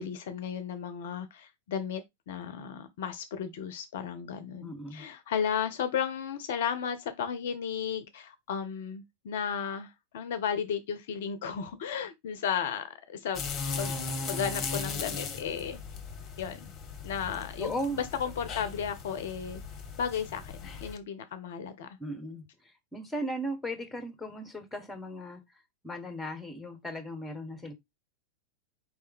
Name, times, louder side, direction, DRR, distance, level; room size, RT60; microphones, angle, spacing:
voice 1, 0.0-2.0 2.3-13.4 13.8-14.0 14.3-15.8 16.4-16.7 17.0-19.6 20.0-20.5 20.8-21.9, left 7 dB, 55° left, 0.5 m, -34 dB
voice 2, 4.6-5.0 17.6-18.0 22.0-22.4 22.9-25.4 25.8-27.7, equal, 5° left, 1.1 m, -36 dB
sound 1, 13.3-21.0, left 4 dB, 30° left, 0.9 m, -38 dB
4.5 x 3.2 x 3.5 m
figure-of-eight pair, 90°, 0 cm